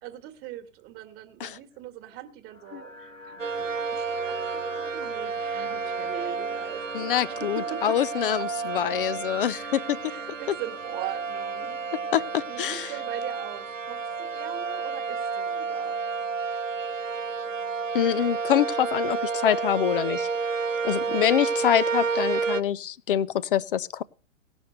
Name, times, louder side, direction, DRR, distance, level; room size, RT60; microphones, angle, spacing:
voice 1, 0.0-3.0 3.2-8.5 10.0-12.1 12.5-16.0 21.0-21.3, right 12 dB, 25° right, 9 dB, 1.5 m, -41 dB
sound 1, 2.5-22.2, left 1 dB, 90° left, 2.0 m, -48 dB
sound 2, 3.4-22.6, right 5 dB, 80° right, 0.7 m, -30 dB
voice 2, 6.9-10.0 12.1-12.9 17.9-20.3 20.8-24.0, left 10 dB, 45° left, 19 dB, 0.6 m, -25 dB
18.0 x 6.2 x 6.4 m, 0.37 s
figure-of-eight pair, 110°, 38 cm